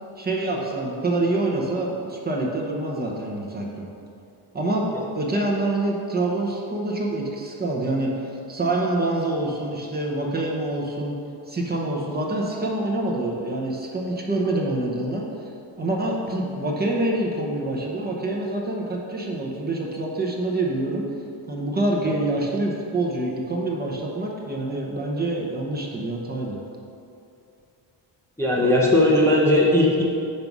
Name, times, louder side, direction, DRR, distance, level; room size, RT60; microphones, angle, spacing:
voice 1, 0.2-3.8 4.5-4.9 5.1-11.2 11.5-15.2 15.8-21.0 21.5-26.6, right 2 dB, 20° right, -2 dB, 0.9 m, -26 dB
voice 2, 28.4-30.0, left 1 dB, 5° left, -5 dB, 0.8 m, -18 dB
6.7 x 5.4 x 6.0 m, 2.6 s
cardioid pair, 165°, 43 cm